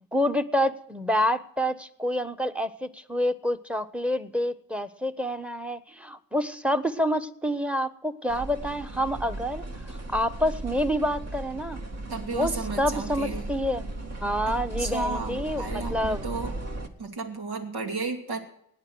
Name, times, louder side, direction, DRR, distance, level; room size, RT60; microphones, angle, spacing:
voice 1, 0.1-11.8 12.3-13.8 14.2-15.6 15.9-16.2, equal, 5° right, 12 dB, 1.2 m, -28 dB
sound 1, 8.3-16.9, right 2 dB, 40° right, 2.2 m, -36 dB
voice 2, 12.1-13.5 14.8-16.5 17.0-18.4, right 3 dB, 75° right, 3 dB, 2.8 m, -33 dB
17.0 x 10.0 x 6.3 m, 0.73 s
supercardioid pair, 60°, 39 cm